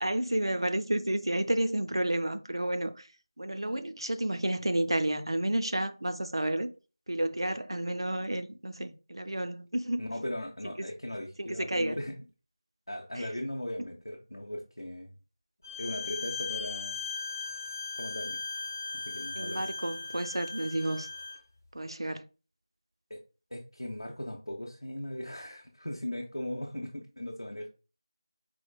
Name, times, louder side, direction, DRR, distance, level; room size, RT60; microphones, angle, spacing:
voice 1, 0.0-3.1 3.4-6.7 7.1-10.0 10.8-10.9 11.4-12.0 13.2-13.3 19.4-21.1 21.7-22.2, right 1 dB, 70° right, 0.4 m, -31 dB
voice 2, 10.0-12.2 12.9-15.1 15.8-17.0 18.0-18.4 18.9-19.7 23.1-23.2 23.5-27.7, left 1 dB, 80° left, 0.6 m, -38 dB
Bowed string instrument, 15.6-21.4, left 5 dB, 35° left, 0.9 m, -38 dB
4.2 x 2.1 x 2.3 m
figure-of-eight pair, 175°, 3 cm